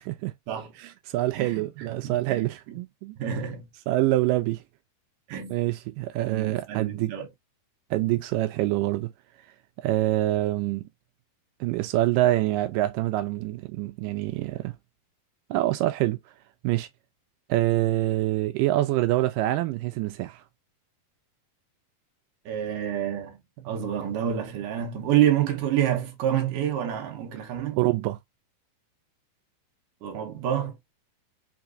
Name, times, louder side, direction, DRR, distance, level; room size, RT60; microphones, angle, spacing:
voice 1, 0.0-0.3 0.8-3.2 3.9-4.6 5.5-7.1 7.9-9.1 9.8-10.9 11.6-14.8 15.5-16.2 16.6-16.9 17.5-20.4 27.8-28.2, right 16 dB, 85° right, 1.9 m, -25 dB
voice 2, 1.4-2.8 3.2-3.7 5.3-5.5 6.3-7.3 22.5-23.4 23.6-27.8 30.0-30.8, right 10 dB, 65° right, 2.4 m, -28 dB
6.1 x 2.9 x 2.6 m
omnidirectional pair, 4.5 m